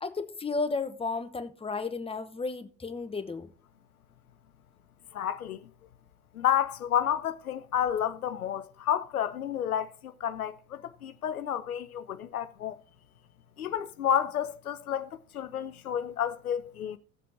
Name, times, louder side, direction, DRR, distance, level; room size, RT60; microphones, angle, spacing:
voice 1, 0.0-3.5, left 4 dB, 15° left, 1.0 m, -33 dB
voice 2, 5.1-5.6 6.3-12.8 13.6-17.0, left 9 dB, 85° left, 0.5 m, -30 dB
17.0 x 7.4 x 2.8 m
figure-of-eight pair, 60°, 43 cm